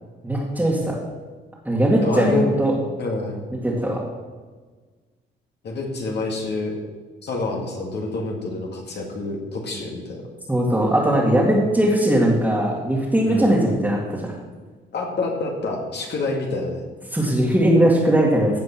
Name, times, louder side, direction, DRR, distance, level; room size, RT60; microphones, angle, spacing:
voice 1, 0.2-1.0 1.7-2.7 3.5-4.0 10.5-14.2 17.1-18.6, right 1 dB, 10° right, -6 dB, 2.2 m, -19 dB
voice 2, 2.0-2.5 3.0-3.4 5.6-6.8 7.2-10.2 13.3-13.5 14.9-16.9, left 3 dB, 60° left, 0 dB, 2.3 m, -27 dB
15.5 x 5.3 x 6.1 m, 1.4 s
cardioid pair, 90°, 20 cm